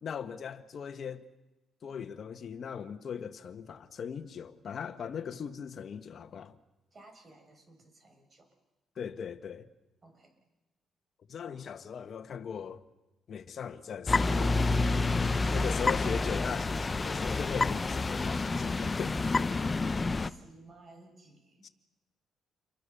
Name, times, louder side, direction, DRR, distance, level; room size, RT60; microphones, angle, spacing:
voice 1, 0.0-1.3 1.8-6.5 9.0-9.7 11.3-12.8 13.3-14.6 15.5-19.4 21.6-21.7, left 7 dB, 55° left, 1.6 m, -39 dB
voice 2, 6.9-8.5 10.0-10.4 11.4-11.6 19.3-21.6, right 2 dB, 35° right, 6.6 m, -57 dB
sound 1, 14.1-20.3, left 3 dB, 25° left, 0.8 m, -28 dB
28.5 x 23.5 x 7.0 m
cardioid pair, 90°, 0 cm